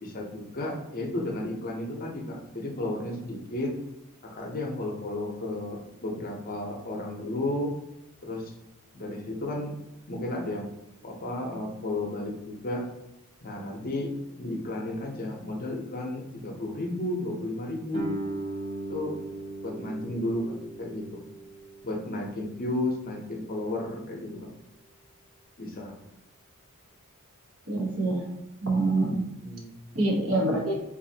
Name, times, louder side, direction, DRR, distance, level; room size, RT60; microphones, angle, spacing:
voice 1, 0.0-3.8 4.2-7.7 8.2-8.5 8.9-9.8 10.1-10.7 11.0-12.9 13.4-18.2 18.9-19.2 19.6-21.2 21.8-24.5 25.6-26.0 29.4-29.8, left 1 dB, 40° left, 1 dB, 0.7 m, -33 dB
Guitar, 17.9-23.3, right 2 dB, 35° right, 0.9 m, -38 dB
voice 2, 27.7-28.3 28.6-29.2 29.9-30.8, right 2 dB, 65° right, 0 dB, 0.9 m, -25 dB
4.0 x 2.6 x 2.7 m, 0.91 s
head